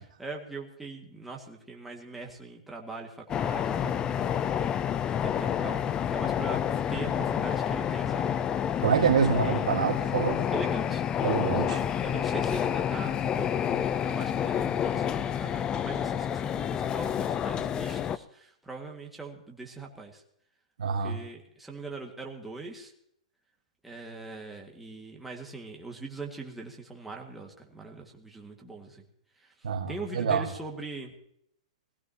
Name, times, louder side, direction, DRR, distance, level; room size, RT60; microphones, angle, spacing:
voice 1, 0.0-4.7 5.1-5.8 6.1-6.6 6.9-8.3 9.4-9.6 10.5-20.2 21.0-22.9 23.8-29.0 29.4-29.5 29.9-31.1, right 3 dB, 5° right, 0 dB, 1.9 m, -41 dB
sound 1, 3.3-18.2, left 9 dB, 20° left, 0.5 m, -29 dB
voice 2, 8.8-10.4 11.2-11.8 20.8-21.2 29.6-30.5, right 6 dB, 80° right, 3 dB, 2.0 m, -26 dB
20.5 x 15.5 x 2.9 m, 0.70 s
hypercardioid pair, 135°, 4 cm